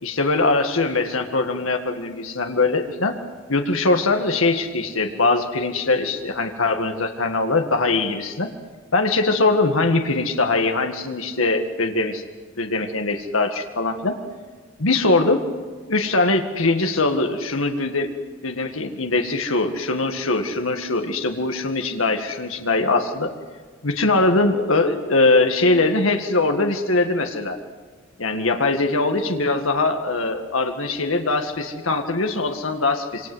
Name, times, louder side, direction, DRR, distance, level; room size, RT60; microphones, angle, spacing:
voice 1, 0.0-3.2 3.5-8.5 8.9-12.2 12.6-14.2 14.8-15.4 15.9-18.1 18.4-23.3 23.8-27.6 28.2-33.3, left 3 dB, 80° left, 5 dB, 1.9 m, -21 dB
26.5 x 25.5 x 8.0 m, 1.5 s
head